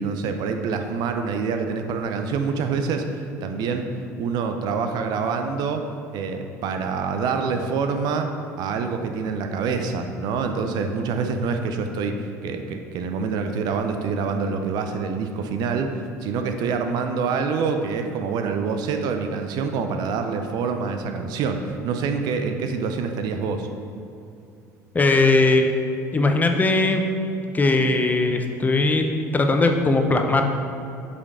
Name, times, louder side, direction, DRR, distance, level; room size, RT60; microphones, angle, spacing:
voice 1, 0.0-3.9 4.2-5.8 6.1-8.3 8.6-12.1 12.4-23.7, right 5 dB, 50° right, 6 dB, 0.6 m, -26 dB
voice 2, 24.9-25.7 26.1-27.0 27.5-30.4, left 2 dB, 20° left, 5 dB, 0.7 m, -19 dB
8.1 x 5.2 x 3.6 m, 2.7 s
figure-of-eight pair, 65°, 9 cm